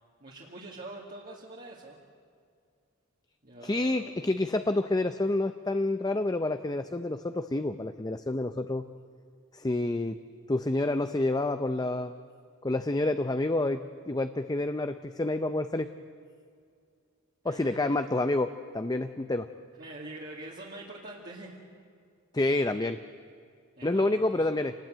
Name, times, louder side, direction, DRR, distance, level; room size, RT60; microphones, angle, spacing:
voice 1, 0.2-2.0 3.4-4.2 17.4-18.1 19.8-21.5 23.8-24.4, right 2 dB, 45° right, -4 dB, 2.5 m, -44 dB
voice 2, 3.6-8.8 9.5-10.2 10.5-12.1 12.6-13.8 14.1-15.9 17.4-19.5 22.3-23.0 23.8-24.7, left 2 dB, 20° left, 9 dB, 0.6 m, -28 dB
27.0 x 20.0 x 9.1 m, 2.2 s
head